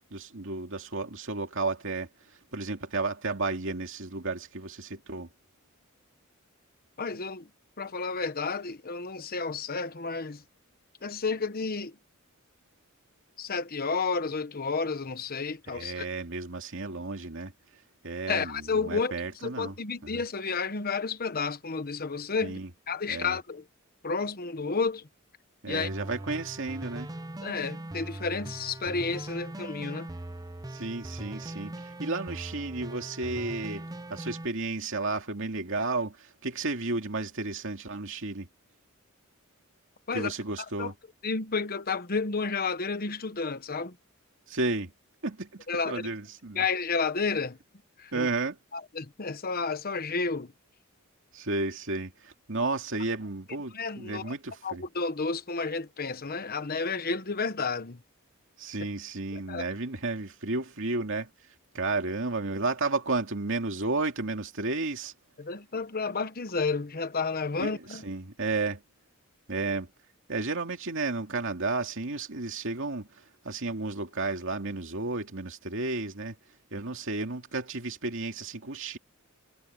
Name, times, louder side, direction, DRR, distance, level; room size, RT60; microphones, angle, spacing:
voice 1, 0.1-2.1 2.5-5.3 15.7-17.5 18.0-19.7 20.1-20.2 22.4-22.7 23.1-23.4 25.6-27.1 30.7-38.5 40.1-40.9 44.5-44.9 45.2-46.6 48.1-48.6 51.3-54.8 58.6-61.3 61.7-65.1 67.6-68.8 69.5-69.9 70.3-73.1 73.4-76.3 76.7-79.0, right 3 dB, 65° right, 2.6 m, -32 dB
voice 2, 7.0-7.5 7.8-10.4 11.0-12.0 13.4-16.1 18.3-19.1 19.4-22.6 22.9-23.6 24.0-25.1 25.7-25.9 27.4-30.1 40.1-40.3 40.8-40.9 41.2-44.0 45.7-46.1 46.5-47.6 48.0-48.3 48.7-50.5 53.7-54.3 54.6-58.0 59.3-59.6 65.4-68.0, left 4 dB, 45° left, 1.1 m, -31 dB
sound 1, 25.7-34.4, right 1 dB, 15° right, 0.7 m, -40 dB
head